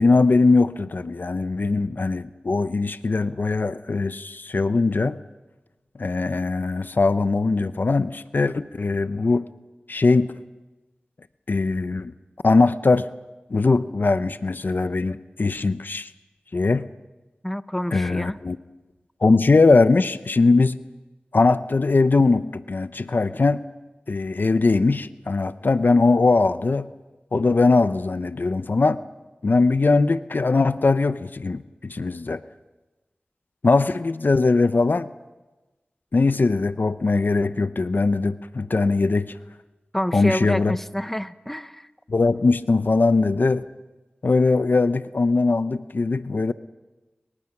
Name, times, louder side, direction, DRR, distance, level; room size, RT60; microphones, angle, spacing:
voice 1, 0.0-5.2 6.0-9.4 9.9-10.4 11.5-12.1 12.4-13.1 13.5-16.1 16.5-16.9 17.9-18.6 19.2-20.8 21.3-23.6 24.1-26.9 27.3-29.0 29.4-32.4 33.6-35.1 36.1-39.4 40.1-40.8 42.1-43.7 44.2-46.5, left 3 dB, 65° left, 13 dB, 0.7 m, -20 dB
voice 2, 17.4-18.4 39.9-41.9, equal, 5° left, 13 dB, 0.9 m, -28 dB
28.0 x 23.5 x 6.0 m, 1.1 s
wide cardioid pair, 50°, 4 cm